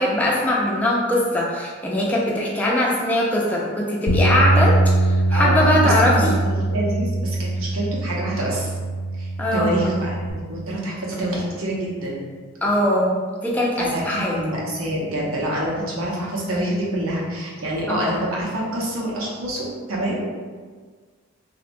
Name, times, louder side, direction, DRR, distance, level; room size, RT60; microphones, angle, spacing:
voice 1, 0.0-6.3 9.4-9.8 12.6-14.4 17.9-18.1, left 1 dB, 5° left, -4 dB, 0.3 m, -21 dB
sound 1, 4.1-10.3, right 2 dB, 75° left, 0.4 m, -22 dB
voice 2, 5.3-8.7 9.1-12.2 13.8-20.3, right 1 dB, 80° right, -4 dB, 0.7 m, -26 dB
2.7 x 2.1 x 2.5 m, 1.5 s
head